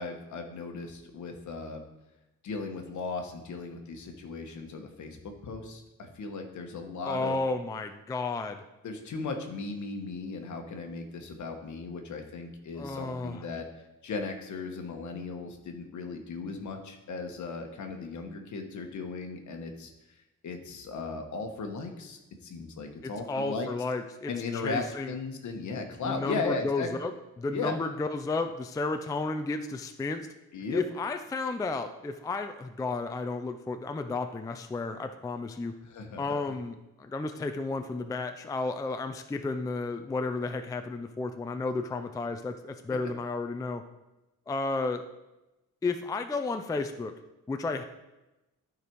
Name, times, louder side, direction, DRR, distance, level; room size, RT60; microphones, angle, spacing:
voice 1, 0.0-1.8 2.4-7.4 8.8-13.7 14.0-19.9 20.4-23.7 24.3-26.9 27.5-27.7 30.5-30.8 35.8-36.5, left 4 dB, 60° left, 4 dB, 1.3 m, -37 dB
voice 2, 7.0-8.6 12.8-13.4 23.3-25.1 26.0-27.1 27.4-30.3 30.7-35.7 36.2-43.8 44.5-45.0 45.8-47.1 47.5-47.8, left 3 dB, 10° left, 7 dB, 0.3 m, -32 dB
12.0 x 5.1 x 4.6 m, 0.99 s
wide cardioid pair, 155°, 33 cm